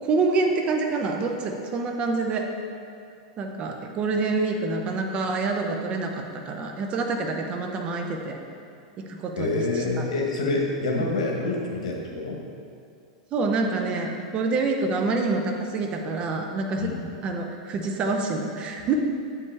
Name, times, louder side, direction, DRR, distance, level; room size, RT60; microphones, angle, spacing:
voice 1, 0.0-2.5 3.4-6.1 6.5-8.4 9.0-10.0 10.9-11.1 13.3-16.9 17.2-18.9, right 3 dB, 30° right, 3 dB, 0.8 m, -27 dB
voice 2, 9.3-12.4 16.8-17.1, left 2 dB, 85° left, 0 dB, 1.3 m, -27 dB
8.1 x 5.4 x 3.5 m, 2.4 s
supercardioid pair, 130°, 3 cm